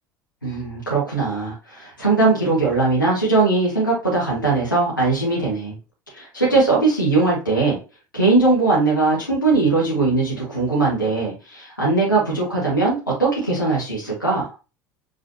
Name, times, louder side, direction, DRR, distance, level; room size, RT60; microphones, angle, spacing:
voice 1, 0.4-5.7 6.1-7.8 8.1-14.5, right 3 dB, 90° left, -5 dB, 1.6 m, -20 dB
5.0 x 3.2 x 2.8 m, 0.30 s
figure-of-eight pair, 70°, 10 cm